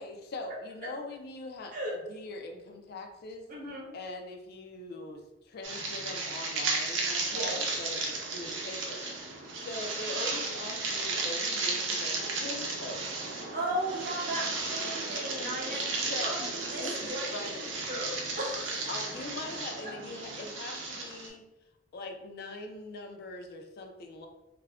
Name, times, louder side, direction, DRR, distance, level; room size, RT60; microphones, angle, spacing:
voice 1, 0.0-3.5 3.9-5.2 5.5-9.1 9.5-13.1 16.1-16.4 16.8-17.8 18.9-21.4 21.9-24.3, left 2 dB, 55° left, 4 dB, 0.4 m, -41 dB
voice 2, 3.5-3.9 7.3-7.6 13.5-17.6 17.9-18.9 19.8-19.9, right 1 dB, 45° right, -3 dB, 0.9 m, -36 dB
sound 1, 5.6-21.3, right 3 dB, 75° right, 0.6 m, -34 dB
2.3 x 2.1 x 3.4 m, 0.92 s
head